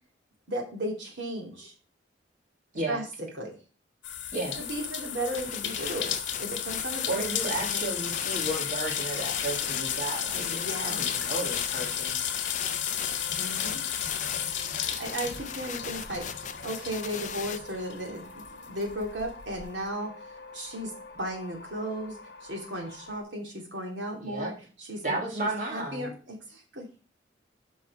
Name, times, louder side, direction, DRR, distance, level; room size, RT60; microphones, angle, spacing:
voice 1, 0.5-1.7 2.9-3.0 3.4-3.5 4.6-7.8 10.3-11.0 13.4-13.8 14.9-16.3 16.6-20.1 20.5-24.5 24.8-25.2 25.7-26.9, right 1 dB, 70° right, 1 dB, 3.0 m, -35 dB
sound 1, 4.0-18.1 18.4-19.6, left 9 dB, 80° left, 1.4 m, -33 dB
sound 2, 4.5-23.2, left 3 dB, 60° left, 1.3 m, -47 dB
sound 3, 5.3-17.6, left 8 dB, 40° left, 0.6 m, -39 dB
voice 2, 7.1-12.2 24.2-24.5 25.0-26.1, right 2 dB, 45° right, -1 dB, 2.9 m, -33 dB
6.1 x 6.0 x 5.5 m, 0.36 s
head